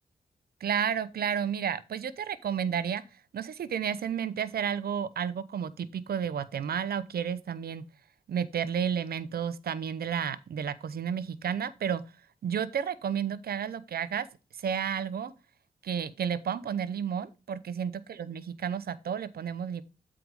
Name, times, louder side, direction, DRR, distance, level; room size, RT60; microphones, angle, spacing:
voice 1, 0.6-3.0 3.3-7.8 8.3-12.0 12.4-14.3 14.6-15.3 15.8-19.8, right 8 dB, 75° right, 0.7 m, -31 dB
7.8 x 4.8 x 5.2 m
cardioid pair, 50°, 16 cm